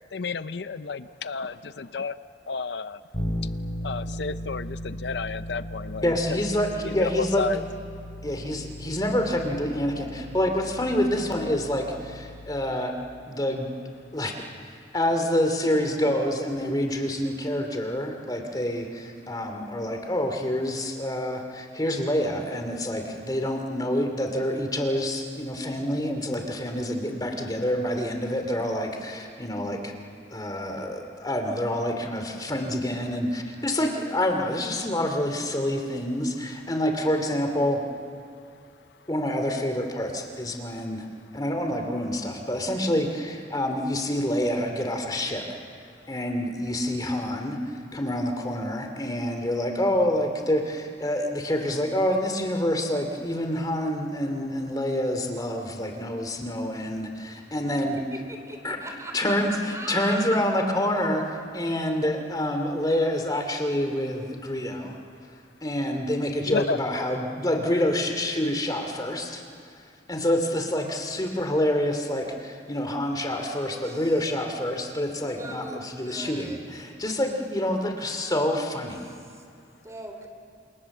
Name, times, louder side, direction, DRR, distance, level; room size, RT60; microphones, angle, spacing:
voice 1, 0.1-2.2 2.5-3.0 3.8-6.4 6.8-7.6 66.5-66.8, left 4 dB, 75° left, 13 dB, 0.6 m, -31 dB
Bass guitar, 3.1-13.0, equal, 40° left, 4.6 m, -37 dB
voice 2, 6.0-7.5 8.2-12.9 13.3-13.7 14.1-14.3 14.6-29.9 30.3-37.8 39.1-41.1 41.3-45.6 46.1-47.6 47.9-58.0 58.6-58.8 59.1-61.2 61.5-65.0 65.6-69.4 70.1-79.0, left 1 dB, 20° left, 4 dB, 2.7 m, -27 dB
voice 3, 58.1-60.4 73.7-74.3 75.4-76.7 78.7-79.4 79.8-80.3, right 2 dB, 20° right, 4 dB, 3.5 m, -40 dB
27.5 x 27.5 x 7.3 m, 2.3 s
head